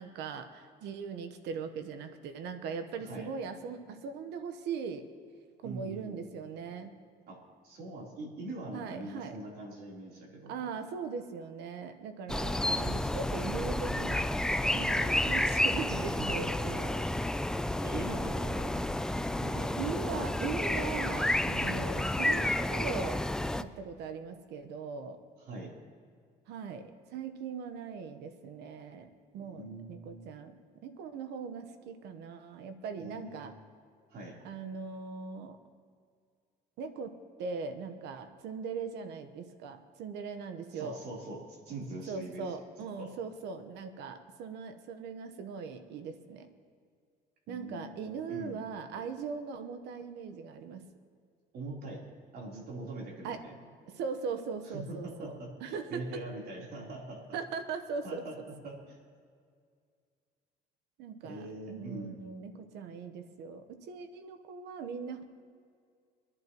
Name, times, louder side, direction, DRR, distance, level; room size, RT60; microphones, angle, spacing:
voice 1, 0.0-5.1 5.6-7.0 8.7-9.4 10.5-14.4 14.7-17.0 19.8-23.3 23.6-25.2 26.5-33.5 34.4-35.6 36.8-41.0 42.1-46.5 47.5-50.8 53.2-53.4 53.9-56.2 57.3-58.2 61.0-65.2, right 5 dB, 85° right, 8 dB, 1.1 m, -40 dB
voice 2, 5.6-6.2 7.3-10.5 16.2-16.8 17.6-18.9 19.4-19.9 25.4-25.7 29.4-30.3 33.0-33.5 34.1-34.4 40.7-42.5 43.0-43.1 47.5-47.9 48.3-48.6 51.5-52.0 52.3-53.5 54.6-57.4 58.0-58.4 58.6-59.0 61.2-62.2, right 2 dB, 65° right, -2 dB, 3.7 m, -43 dB
sound 1, 12.3-23.6, left 1 dB, 5° left, 0.4 m, -30 dB
23.5 x 11.0 x 3.0 m, 2.1 s
cardioid pair, 110°, 17 cm